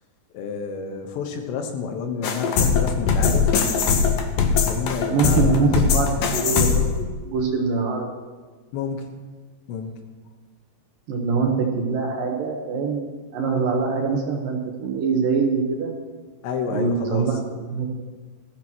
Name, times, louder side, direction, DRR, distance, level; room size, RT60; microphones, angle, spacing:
voice 1, 0.3-3.6 4.7-5.7 8.7-9.1 9.7-10.0 16.4-17.3, left 6 dB, 85° left, 5 dB, 3.4 m, -30 dB
sound 1, 2.2-7.0, left 6 dB, 70° left, 2.3 m, -20 dB
voice 2, 5.1-8.1 11.1-15.9 16.7-17.4 17.7-18.0, right 4 dB, 70° right, 1 dB, 2.4 m, -24 dB
19.0 x 14.0 x 3.0 m, 1.4 s
omnidirectional pair, 5.1 m